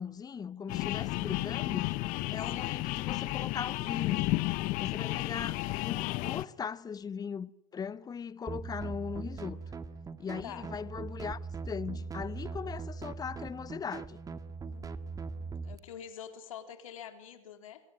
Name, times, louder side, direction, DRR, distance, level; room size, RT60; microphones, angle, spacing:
voice 1, 0.0-2.0 2.3-4.4 4.8-9.6 10.2-14.2, left 6 dB, 20° left, 1.0 m, -39 dB
sound 1, 0.7-6.4, left 19 dB, 50° left, 1.1 m, -32 dB
voice 2, 2.5-2.8 10.4-10.7 14.6-17.8, left 9 dB, 75° left, 3.8 m, -48 dB
sound 2, 8.5-15.8, right 4 dB, 20° right, 1.9 m, -40 dB
27.5 x 22.5 x 9.1 m
hypercardioid pair, 85°, 17 cm